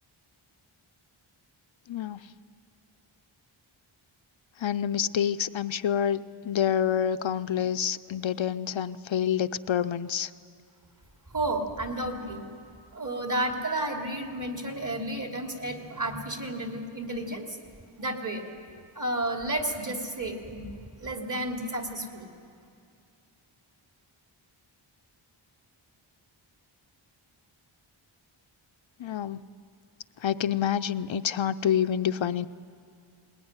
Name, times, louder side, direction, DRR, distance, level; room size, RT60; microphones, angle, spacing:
voice 1, 1.9-2.3 4.6-10.3 29.0-29.4 30.2-32.5, left 9 dB, 65° left, 11 dB, 0.6 m, -27 dB
voice 2, 11.3-12.4 12.9-17.6 18.0-18.4 18.9-20.7 21.0-22.3, right 1 dB, 40° right, 3 dB, 2.9 m, -32 dB
20.5 x 20.5 x 9.7 m, 2.4 s
wide cardioid pair, 100°, 49 cm